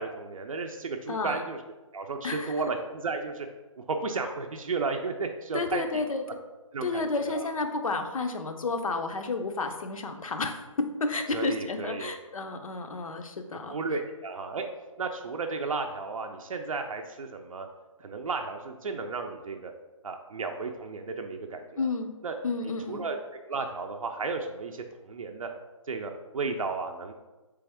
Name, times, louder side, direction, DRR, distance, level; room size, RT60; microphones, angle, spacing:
voice 1, 0.0-1.6 1.9-3.5 3.8-6.0 6.7-7.5 11.3-12.1 13.7-14.7 15.0-17.7 18.0-19.7 20.0-21.9 22.2-22.4 22.9-23.2 23.5-25.5 25.9-27.1, right 4 dB, 80° right, 4 dB, 0.4 m, -33 dB
voice 2, 1.1-1.4 2.2-2.5 5.5-6.2 6.8-13.8 21.8-22.1 22.4-23.0, left 3 dB, 85° left, 6 dB, 0.6 m, -31 dB
3.4 x 3.4 x 3.4 m, 1.1 s
hypercardioid pair, 165°, 17 cm